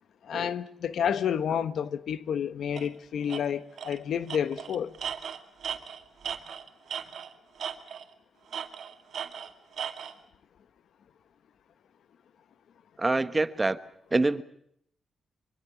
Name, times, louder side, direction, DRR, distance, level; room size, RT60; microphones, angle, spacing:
voice 1, 0.2-4.9, left 8 dB, 75° left, 1.2 m, -30 dB
Tools, 2.8-2.9 3.3-3.4 3.8-4.0 4.3-7.3 7.6-8.1 8.5-10.1, right 8 dB, 65° right, 2.3 m, -37 dB
voice 2, 13.0-13.8 14.1-14.4, right 2 dB, 20° right, 1.2 m, -25 dB
25.0 x 24.0 x 7.1 m
cardioid pair, 100°, 0 cm